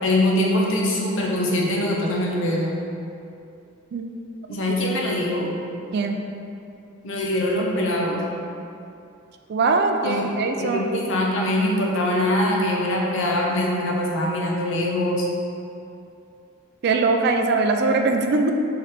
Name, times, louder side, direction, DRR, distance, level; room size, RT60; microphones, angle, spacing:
voice 1, 0.0-2.8 4.5-5.5 7.0-8.2 10.0-10.2 10.6-15.2, left 1 dB, 60° left, -2 dB, 0.7 m, -23 dB
voice 2, 9.5-11.1 16.8-18.5, right 3 dB, 50° right, 4 dB, 0.3 m, -21 dB
3.8 x 3.4 x 4.2 m, 2.6 s
head